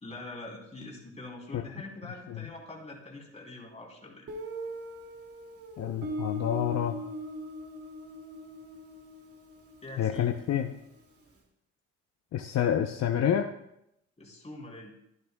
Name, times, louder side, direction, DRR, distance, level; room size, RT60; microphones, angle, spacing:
voice 1, 0.0-4.3 9.8-10.3 14.2-14.9, left 2 dB, 20° left, -1 dB, 3.1 m, -44 dB
Guitar, 4.3-10.9, equal, 50° right, 2.3 m, -40 dB
voice 2, 5.8-7.0 10.0-10.7 12.3-13.5, left 10 dB, 60° left, 5 dB, 0.7 m, -28 dB
13.5 x 10.5 x 2.2 m, 0.80 s
cardioid pair, 90°, 30 cm